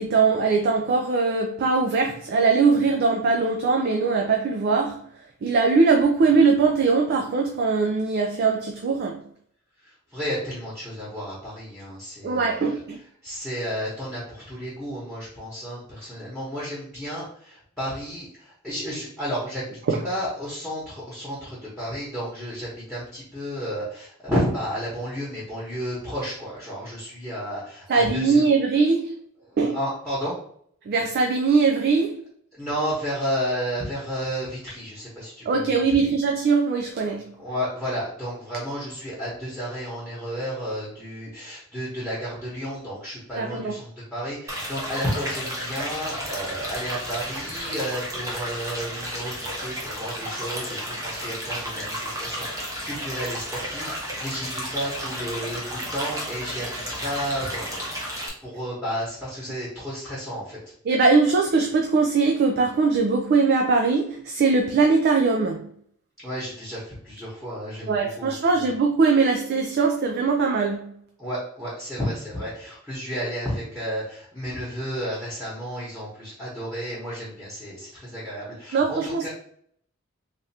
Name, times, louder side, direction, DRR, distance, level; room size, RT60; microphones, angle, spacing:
voice 1, 0.0-5.0 5.4-9.2 12.2-13.0 27.9-29.1 29.6-29.8 30.9-32.2 35.5-37.2 43.4-43.7 60.9-65.6 67.9-70.8 78.7-79.2, right 4 dB, 50° right, 0.4 m, -21 dB
voice 2, 9.8-19.7 20.0-28.4 29.4-30.4 32.5-36.1 37.4-57.9 58.4-60.6 66.2-68.7 71.2-79.3, equal, ahead, 1.0 m, -32 dB
sound 1, 44.5-58.3, equal, 15° right, 0.7 m, -32 dB
3.3 x 2.5 x 2.7 m
head